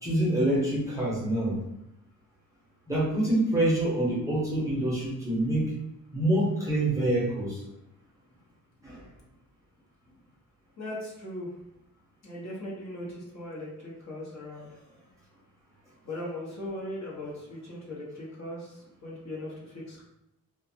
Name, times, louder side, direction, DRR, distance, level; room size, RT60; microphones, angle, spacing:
voice 1, 0.0-1.6 2.9-5.7 6.1-7.6 8.8-9.0, right 1 dB, 10° right, -8 dB, 0.7 m, -26 dB
voice 2, 10.8-11.5 12.2-14.7 16.0-20.0, left 1 dB, 50° left, -5 dB, 0.9 m, -39 dB
2.4 x 2.3 x 2.7 m, 0.87 s
wide cardioid pair, 155°, 35 cm